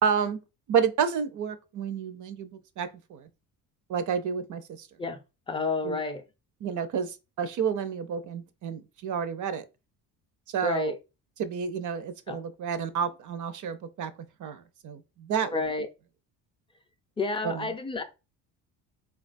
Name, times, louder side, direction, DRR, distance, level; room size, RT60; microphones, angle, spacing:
voice 1, 0.0-0.4 0.7-3.3 3.9-4.9 5.8-6.0 6.6-9.6 10.5-11.0 11.4-14.1 14.4-15.6 17.4-17.7, right 7 dB, 50° right, 0.5 m, -30 dB
voice 2, 5.5-6.2 10.6-11.0 12.3-12.4 15.5-15.9 17.2-18.0, left 3 dB, 15° left, 0.4 m, -30 dB
3.6 x 2.3 x 2.5 m
cardioid pair, 90°, 39 cm